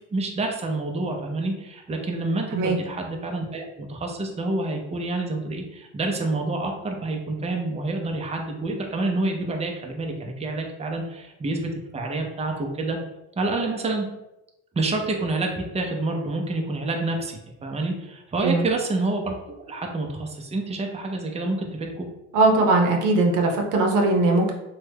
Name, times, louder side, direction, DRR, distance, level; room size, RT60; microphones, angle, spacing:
voice 1, 0.1-13.0 13.4-14.1 14.7-19.4 19.7-22.1, right 2 dB, 20° right, 2 dB, 0.6 m, -28 dB
voice 2, 22.3-24.5, right 2 dB, 90° right, 2 dB, 0.7 m, -20 dB
3.0 x 2.2 x 3.4 m, 0.93 s
cardioid pair, 90°, 30 cm